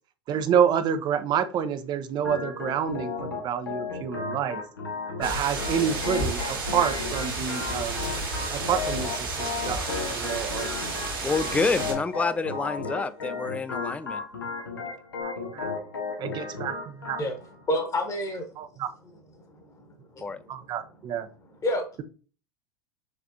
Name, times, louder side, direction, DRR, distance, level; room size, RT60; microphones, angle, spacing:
voice 1, 0.3-4.6 5.2-8.0 8.5-10.8 15.2-15.7 16.2-17.2 18.6-18.9 20.5-21.3, right 8 dB, 35° right, 0.6 m, -28 dB
Organ, 2.2-17.3, left 4 dB, 85° left, 1.1 m, -34 dB
sound 1, 5.2-11.9, right 2 dB, 70° right, 1.7 m, -32 dB
sound 2, 9.8-12.4 15.2-15.3, left 3 dB, 50° left, 1.4 m, -47 dB
voice 2, 11.2-14.2 20.2-20.4, left 4 dB, 10° left, 0.3 m, -28 dB
voice 3, 17.7-18.5 19.8-19.9 20.4-20.5 21.6-22.0, left 1 dB, 25° left, 1.3 m, -28 dB
5.0 x 3.3 x 2.7 m
figure-of-eight pair, 85°, 12 cm